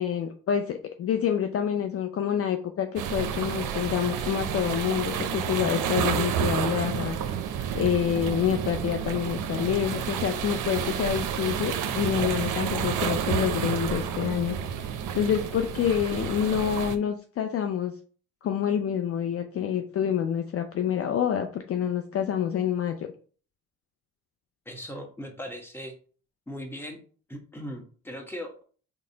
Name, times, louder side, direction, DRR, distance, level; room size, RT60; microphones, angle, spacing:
voice 1, 0.0-7.2 7.7-14.9 15.1-17.9 18.4-23.1, left 9 dB, 45° left, 6 dB, 0.4 m, -27 dB
sound 1, 3.0-17.0, right 8 dB, 65° right, 0.6 m, -30 dB
voice 2, 24.7-25.9 26.5-27.0 27.3-28.6, equal, 5° left, 2 dB, 1.1 m, -38 dB
4.0 x 2.0 x 3.8 m, 0.42 s
supercardioid pair, 60°, 34 cm